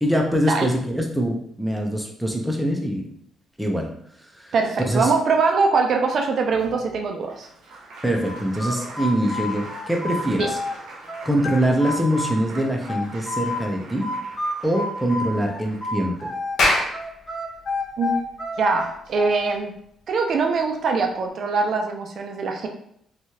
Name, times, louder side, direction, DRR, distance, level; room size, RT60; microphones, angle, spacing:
voice 1, 0.0-3.1 3.6-3.9 4.4-4.5 4.9-5.1 8.0-10.5 11.2-14.0 14.6-16.3, equal, ahead, 0 dB, 0.5 m, -23 dB
voice 2, 4.5-7.5 10.3-10.5 18.0-18.1 18.6-19.7 20.1-22.7, right 4 dB, 60° right, 3 dB, 0.4 m, -22 dB
Applause, 6.5-16.8 18.1-18.2 18.5-19.5, right 2 dB, 80° right, 0.8 m, -43 dB
sound 1, 8.2-10.8 11.1-13.6 14.0-16.6 16.9-19.5, left 2 dB, 50° left, 1.3 m, -29 dB
Clapping, 16.4-21.2, left 1 dB, 70° left, 0.7 m, -27 dB
3.0 x 2.3 x 2.7 m, 0.69 s
cardioid pair, 90°, 0 cm